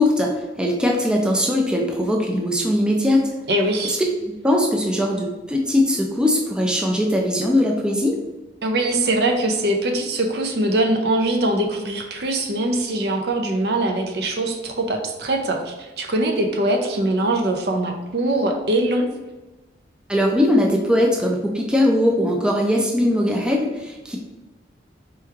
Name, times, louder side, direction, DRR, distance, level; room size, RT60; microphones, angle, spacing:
voice 1, 0.0-3.3 3.8-4.0 4.3-8.2 20.1-24.2, left 1 dB, 5° right, 0 dB, 0.4 m, -20 dB
voice 2, 3.5-4.0 8.6-19.1, right 1 dB, 60° right, 4 dB, 0.6 m, -22 dB
4.5 x 3.1 x 3.5 m, 1.1 s
head